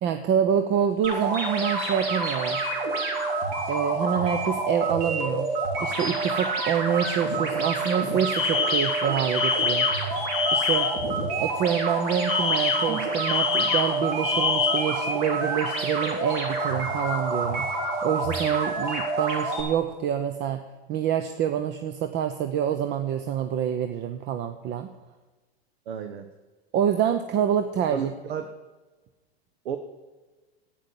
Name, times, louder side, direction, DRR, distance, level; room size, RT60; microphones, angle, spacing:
voice 1, 0.0-2.7 3.7-5.5 5.8-9.9 10.5-10.9 11.4-17.7 18.0-20.6 20.9-24.9 26.7-28.0, right 9 dB, 35° right, 9 dB, 0.8 m, -26 dB
sound 1, 1.0-19.6, right 3 dB, 55° right, 3.6 m, -28 dB
Alarm, 8.3-11.1 12.3-15.0, left 6 dB, 20° left, 2.0 m, -26 dB
voice 2, 25.9-26.3 27.9-28.5 29.6-29.8, right 7 dB, 70° right, 8 dB, 1.1 m, -32 dB
10.5 x 9.3 x 7.0 m, 1.3 s
hypercardioid pair, 115°, 32 cm